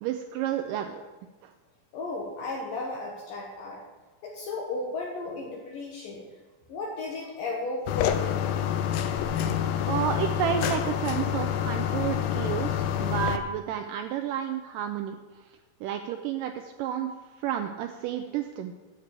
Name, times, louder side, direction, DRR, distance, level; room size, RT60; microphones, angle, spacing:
voice 1, 0.0-1.0 1.4-1.5 9.9-15.2 15.8-17.1 17.4-18.7, right 9 dB, 85° right, 6 dB, 1.9 m, -31 dB
voice 2, 1.9-3.8 4.2-6.2 6.7-8.4, left 3 dB, 65° left, -2 dB, 2.8 m, -34 dB
sound 1, 7.9-13.4, left 9 dB, 85° left, 2.6 m, -27 dB
9.7 x 6.8 x 8.8 m, 1.3 s
omnidirectional pair, 4.6 m